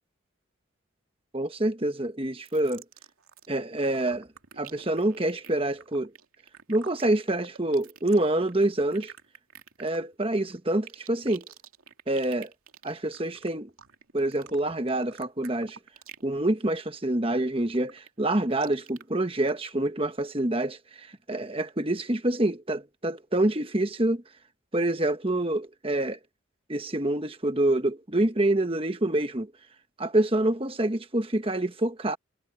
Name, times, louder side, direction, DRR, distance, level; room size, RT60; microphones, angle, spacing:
voice 1, 1.3-2.8 3.5-4.3 4.6-6.1 6.7-9.1 9.8-11.5 12.1-12.5 12.8-13.7 14.1-15.8 16.2-24.2 24.7-26.2 26.7-29.5 30.0-32.2, right 1 dB, 25° right, 1.3 m, -26 dB
sound 1, 2.4-3.5 3.8-16.3 16.6-17.0 17.4-19.0 19.5-19.6, right 8 dB, 90° right, 2.7 m, -49 dB
head